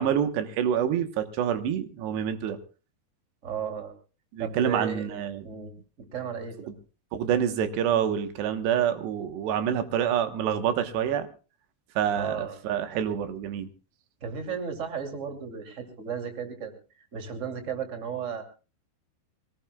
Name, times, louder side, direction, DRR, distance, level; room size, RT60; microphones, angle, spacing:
voice 1, 0.0-2.6 4.3-5.4 7.1-11.3 12.0-13.7, right 9 dB, 85° right, 9 dB, 3.4 m, -27 dB
voice 2, 3.4-3.9 4.4-5.1 5.4-5.7 6.0-6.7 12.1-12.6 14.2-18.4, right 6 dB, 20° right, 6 dB, 2.4 m, -34 dB
25.0 x 18.5 x 2.3 m, 0.34 s
omnidirectional pair, 4.8 m